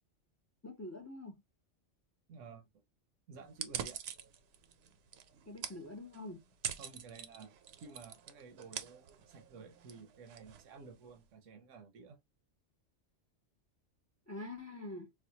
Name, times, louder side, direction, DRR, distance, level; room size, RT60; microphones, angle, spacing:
voice 1, 0.6-1.4 5.5-6.4 14.3-15.1, left 2 dB, 25° left, 0.3 m, -45 dB
voice 2, 2.3-2.7 3.3-4.0 6.8-7.5 7.8-12.2, right 5 dB, 85° right, 1.1 m, -53 dB
sound 1, 3.5-11.2, right 8 dB, 65° right, 0.8 m, -46 dB
4.1 x 2.3 x 2.8 m
omnidirectional pair, 1.3 m